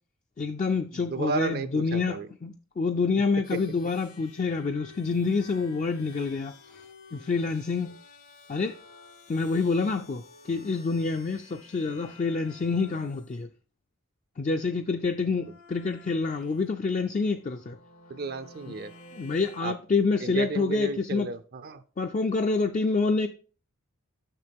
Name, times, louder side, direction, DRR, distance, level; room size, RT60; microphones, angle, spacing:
voice 1, 0.4-6.8 7.1-8.0 8.5-8.7 9.3-13.5 14.4-17.8 19.2-21.3 22.0-23.3, left 4 dB, 35° left, 0.3 m, -27 dB
voice 2, 0.9-2.3 3.5-3.6 15.3-15.4 18.1-18.9 19.6-19.8 20.2-21.8, right 4 dB, 45° right, 0.4 m, -33 dB
sound 1, 3.4-13.3 15.1-16.6 17.4-19.6, left 3 dB, 90° left, 1.6 m, -51 dB
6.7 x 6.2 x 3.5 m
head